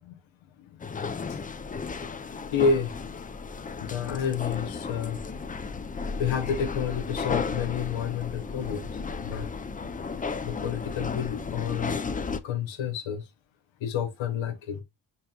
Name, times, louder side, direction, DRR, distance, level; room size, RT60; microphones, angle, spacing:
sound 1, 0.8-12.4, left 5 dB, 20° left, 0.4 m, -34 dB
voice 1, 2.0-3.0 3.8-5.2 6.2-9.5 10.4-12.0 12.4-13.2 13.8-14.8, left 6 dB, 75° left, 0.8 m, -30 dB
5.4 x 2.7 x 2.2 m
supercardioid pair, 50°, 47 cm